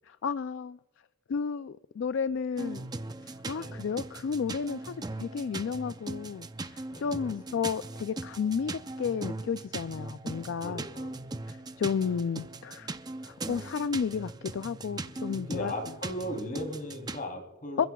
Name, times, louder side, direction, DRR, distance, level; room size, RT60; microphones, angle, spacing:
voice 1, 0.0-0.8 1.3-2.9 3.2-10.8 11.5-12.9 13.2-15.7 17.8-17.9, left 6 dB, 60° left, 0.3 m, -32 dB
sound 1, 2.6-17.2, right 2 dB, 20° right, 0.5 m, -40 dB
voice 2, 6.9-7.6 10.6-11.3 15.3-17.9, left 1 dB, 40° left, 3.2 m, -38 dB
27.0 x 15.0 x 2.3 m
head